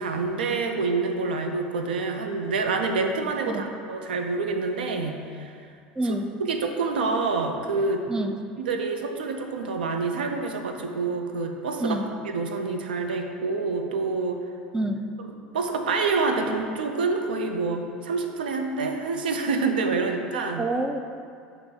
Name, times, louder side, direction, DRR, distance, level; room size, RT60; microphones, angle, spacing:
voice 1, 0.0-5.7 6.4-8.1 8.6-12.0 12.3-14.4 15.5-20.6, right 4 dB, 75° right, 4 dB, 0.5 m, -27 dB
voice 2, 6.0-6.3 8.1-8.4 11.8-12.1 14.7-15.2 20.6-21.1, right 1 dB, 10° right, 6 dB, 0.4 m, -27 dB
6.0 x 3.1 x 5.1 m, 2.3 s
figure-of-eight pair, 70°, 5 cm